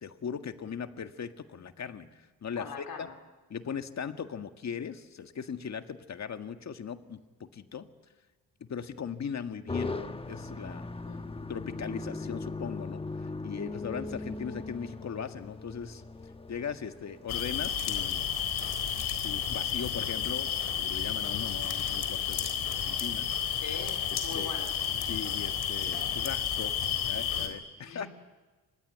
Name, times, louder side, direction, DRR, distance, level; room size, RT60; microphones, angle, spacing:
voice 1, 0.0-3.1 3.5-7.9 8.6-10.9 11.5-16.0 16.5-18.3 19.2-23.3 24.1-24.5 25.0-26.7 27.1-28.1, left 7 dB, 45° left, 8 dB, 1.8 m, -39 dB
voice 2, 2.6-3.1 11.0-11.2 23.5-24.7 27.8-28.1, left 5 dB, 70° left, 3 dB, 4.1 m, -42 dB
sound 1, 9.7-17.4, left 3 dB, 15° left, 1.1 m, -39 dB
sound 2, 17.3-27.5, left 8 dB, 90° left, 4.0 m, -31 dB
25.0 x 20.0 x 9.3 m, 1.2 s
cardioid pair, 110°, 37 cm